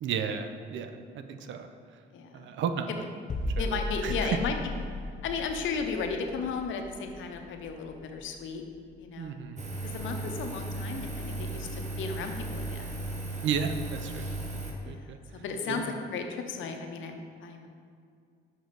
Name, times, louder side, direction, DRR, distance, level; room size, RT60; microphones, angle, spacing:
voice 1, 0.0-1.7 2.3-2.9 3.4-3.7 4.0-4.4 9.2-9.6 10.2-10.3 13.4-14.2 14.9-15.9, right 7 dB, 70° right, 7 dB, 0.5 m, -33 dB
voice 2, 2.1-2.4 2.9-3.0 3.6-4.6 5.2-8.6 9.0-9.4 9.8-13.0 14.8-17.7, left 5 dB, 75° left, 4 dB, 0.7 m, -35 dB
sound 1, 3.3-9.0 9.3-9.5, left 1 dB, 40° left, 0.5 m, -37 dB
Engine, 9.6-14.7, right 2 dB, 35° right, 1.0 m, -36 dB
6.2 x 5.1 x 4.0 m, 2.2 s
cardioid pair, 90°, 20 cm